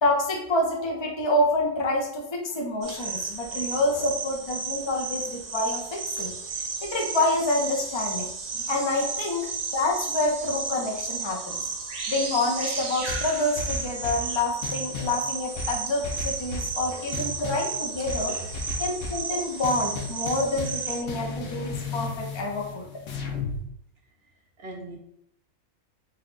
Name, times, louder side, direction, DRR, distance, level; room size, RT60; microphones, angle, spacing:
voice 1, 0.0-6.3 6.8-8.3 8.5-11.6 12.1-18.3 18.8-22.9, left 2 dB, 30° left, 0 dB, 0.5 m, -27 dB
sound 1, 2.8-21.0, right 5 dB, 75° right, 0.3 m, -33 dB
voice 2, 3.5-4.1 17.2-17.3 18.3-18.5 19.0-19.1 24.6-25.0, right 2 dB, 60° right, 1 dB, 0.7 m, -41 dB
sound 2, 13.1-14.3 14.6-15.2 15.6-16.8 17.1-17.7 18.1-19.3 19.6-20.8 21.1-23.6, left 4 dB, 90° left, 1.1 m, -34 dB
4.0 x 2.2 x 3.9 m, 0.75 s
omnidirectional pair, 1.5 m